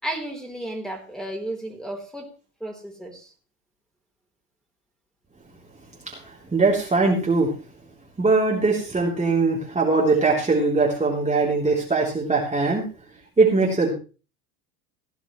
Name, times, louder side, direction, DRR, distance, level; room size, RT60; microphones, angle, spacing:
voice 1, 0.0-2.3 2.6-3.3, right 1 dB, ahead, 2 dB, 4.0 m, -33 dB
voice 2, 6.1-7.5 8.2-12.9 13.4-13.9, right 3 dB, 15° right, -3 dB, 3.4 m, -21 dB
17.0 x 11.0 x 3.2 m, 0.35 s
hypercardioid pair, 85°, 46 cm